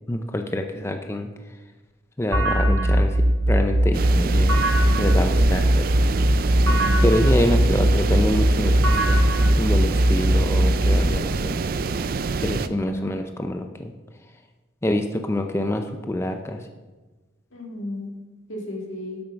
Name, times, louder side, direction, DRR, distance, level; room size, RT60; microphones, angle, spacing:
voice 1, 0.1-1.3 2.2-4.6 5.0-6.0 7.0-9.3 9.6-11.6 12.4-13.9 14.8-16.7, left 1 dB, 15° left, 5 dB, 0.4 m, -26 dB
sound 1, 2.3-11.0, right 1 dB, 80° right, 2.3 m, -19 dB
voice 2, 2.6-3.0 6.7-7.2 12.5-13.1 17.5-18.1 18.5-19.2, left 1 dB, 80° left, -1 dB, 2.2 m, -33 dB
sound 2, 3.9-12.7, right 4 dB, 45° right, 0.4 m, -27 dB
7.9 x 7.9 x 5.8 m, 1.2 s
head